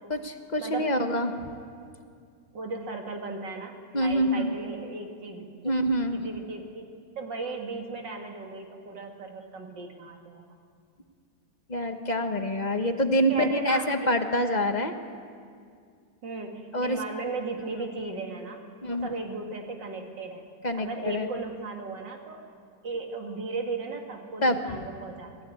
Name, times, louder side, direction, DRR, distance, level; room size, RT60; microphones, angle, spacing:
voice 1, 0.1-1.3 3.9-4.5 5.6-6.2 11.7-14.9 16.7-17.0 18.8-19.1 20.6-21.3 24.4-24.6, equal, 25° left, 6 dB, 1.1 m, -26 dB
voice 2, 2.5-5.7 6.1-6.9 7.2-10.4 12.8-14.1 16.2-18.6 18.9-20.4 20.8-22.4 22.8-25.4, right 3 dB, 70° right, 3 dB, 2.8 m, -36 dB
25.5 x 16.0 x 9.2 m, 2.2 s
omnidirectional pair, 2.0 m